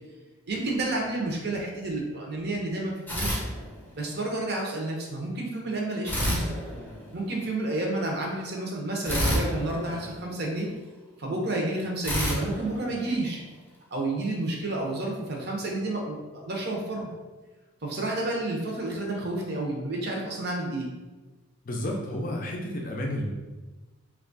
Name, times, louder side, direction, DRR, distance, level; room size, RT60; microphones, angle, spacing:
voice 1, 0.5-3.4 4.0-6.5 7.1-10.7 11.2-13.4 13.9-17.1 17.8-20.9, right 2 dB, 50° right, -1 dB, 0.7 m, -30 dB
sound 1, 3.1-4.2 6.1-7.4 9.0-10.7 12.0-13.6, equal, 10° left, 0.8 m, -30 dB
voice 2, 21.7-23.3, left 1 dB, 40° left, 0 dB, 0.5 m, -31 dB
3.1 x 2.3 x 3.9 m, 1.2 s
head